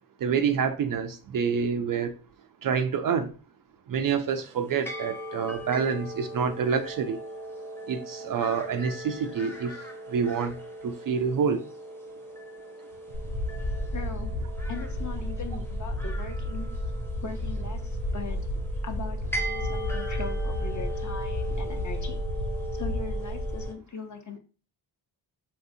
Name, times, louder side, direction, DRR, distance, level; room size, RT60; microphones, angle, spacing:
voice 1, 0.2-2.1 2.6-3.3 3.9-7.2 7.9-9.8 10.1-10.6 10.8-11.6, right 6 dB, 45° right, 0.4 m, -27 dB
sound 1, 4.3-23.7, right 1 dB, 5° left, 0.7 m, -39 dB
sound 2, 13.1-23.7, left 1 dB, 90° left, 1.2 m, -32 dB
voice 2, 13.9-14.3 14.7-16.7 17.2-22.2 22.8-24.4, left 5 dB, 40° left, 0.8 m, -40 dB
3.2 x 2.7 x 2.6 m
cardioid pair, 60°, 48 cm